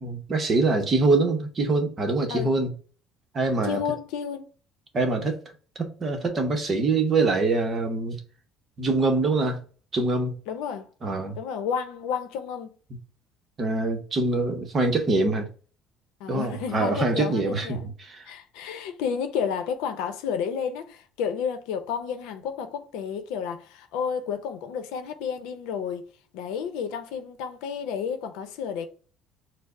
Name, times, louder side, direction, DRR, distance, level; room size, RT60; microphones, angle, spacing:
voice 1, 0.0-2.7 3.3-3.8 4.9-5.4 5.8-8.2 8.8-9.6 9.9-10.4 11.0-11.4 13.6-15.5 16.3-18.3, right 3 dB, 25° right, 0.7 m, -24 dB
voice 2, 3.6-4.5 10.5-10.9 11.4-12.7 16.2-17.9 18.3-26.1 26.3-28.9, left 7 dB, 85° left, 0.7 m, -31 dB
4.5 x 2.0 x 4.6 m
cardioid pair, 165°, 0 cm